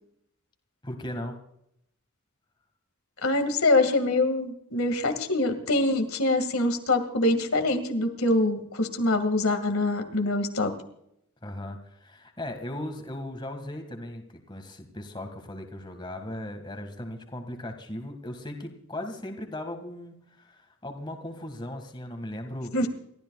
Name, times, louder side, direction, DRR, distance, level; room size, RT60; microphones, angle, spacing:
voice 1, 0.8-1.4 11.4-22.7, left 1 dB, 20° left, 5 dB, 1.9 m, -37 dB
voice 2, 3.2-10.7 22.7-22.9, left 2 dB, 85° left, 6 dB, 2.1 m, -24 dB
29.5 x 13.5 x 2.4 m, 0.77 s
head